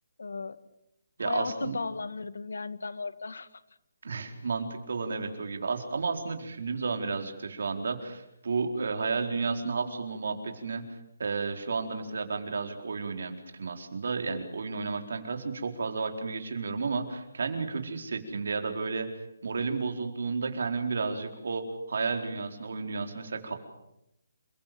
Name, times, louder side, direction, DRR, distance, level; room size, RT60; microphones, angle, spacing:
voice 1, 0.2-0.6 1.2-3.5, left 4 dB, 90° left, 14 dB, 1.8 m, -35 dB
voice 2, 1.2-1.8 4.0-10.8 11.2-19.1 19.4-23.5, right 4 dB, 55° right, 5 dB, 4.4 m, -32 dB
29.0 x 23.0 x 7.7 m, 0.84 s
hypercardioid pair, 180°, 0 cm